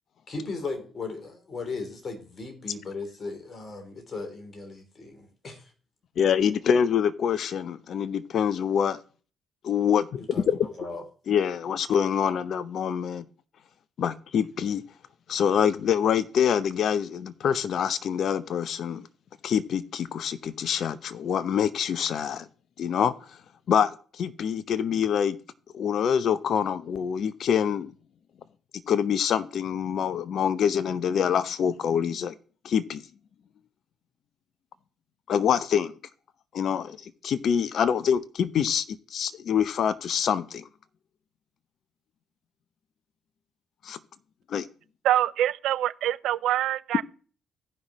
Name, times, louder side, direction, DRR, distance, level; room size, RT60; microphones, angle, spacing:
voice 1, 0.3-5.6 10.2-10.4 10.8-11.0, left 3 dB, 40° left, 3.2 m, -37 dB
voice 2, 6.2-9.0 9.6-10.6 11.3-13.3 14.0-14.8 15.3-19.0 19.4-22.5 22.8-23.1 23.7-25.4 25.7-27.9 28.9-32.3 32.6-33.0 35.3-35.9 36.5-40.6 43.8-44.0 44.5-44.7, left 8 dB, 55° left, 0.7 m, -25 dB
voice 3, 45.0-47.0, right 12 dB, 65° right, 0.4 m, -25 dB
16.0 x 5.6 x 3.0 m
hypercardioid pair, 45°, 0 cm